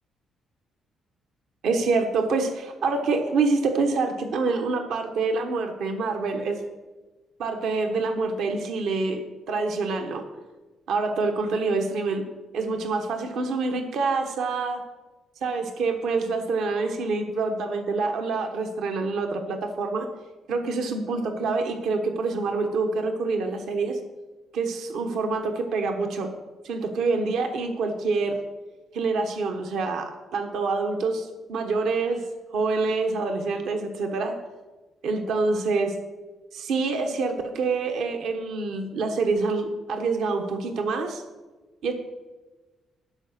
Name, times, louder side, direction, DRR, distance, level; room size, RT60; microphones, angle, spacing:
voice 1, 1.6-6.6 7.4-10.2 10.9-12.3 12.5-14.8 15.4-20.1 20.5-24.0 24.5-26.3 26.6-28.4 28.9-32.3 32.5-34.4 35.0-36.0 36.5-41.2 41.8-41.9, right 3 dB, 75° right, 5 dB, 1.0 m, -26 dB
11.0 x 4.9 x 6.5 m, 1.2 s
cardioid pair, 90°, 0 cm